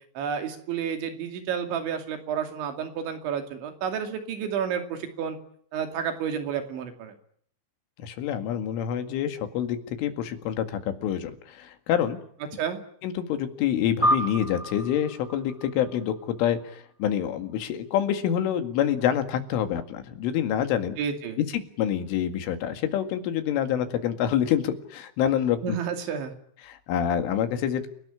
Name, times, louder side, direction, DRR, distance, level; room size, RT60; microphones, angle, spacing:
voice 1, 0.2-5.4 5.7-7.1 12.5-12.8 21.0-21.4 25.6-26.3, right 7 dB, 75° right, 6 dB, 4.8 m, -30 dB
voice 2, 8.0-12.2 13.0-21.0 21.5-25.8 26.6-27.9, left 9 dB, 90° left, 8 dB, 4.6 m, -27 dB
sound 1, 14.0-16.7, equal, 5° right, 1.9 m, -29 dB
29.0 x 18.5 x 9.9 m, 0.65 s
omnidirectional pair, 5.5 m